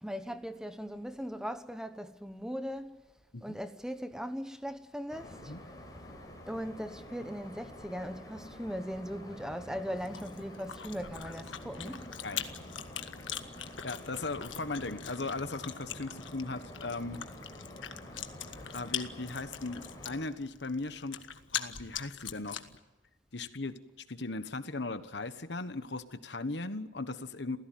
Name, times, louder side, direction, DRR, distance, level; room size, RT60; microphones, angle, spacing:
voice 1, 0.0-3.0 3.4-5.5 6.5-12.1, equal, 5° right, 1.0 m, -39 dB
sound 1, 5.1-20.2, equal, 20° left, 5.0 m, -48 dB
Chewing mastication, 10.0-22.8, left 9 dB, 85° left, 1.6 m, -42 dB
voice 2, 13.8-17.2 18.7-21.2 21.5-22.6 23.3-23.7 24.1-27.6, left 3 dB, 65° left, 1.3 m, -38 dB
28.0 x 16.0 x 9.4 m
head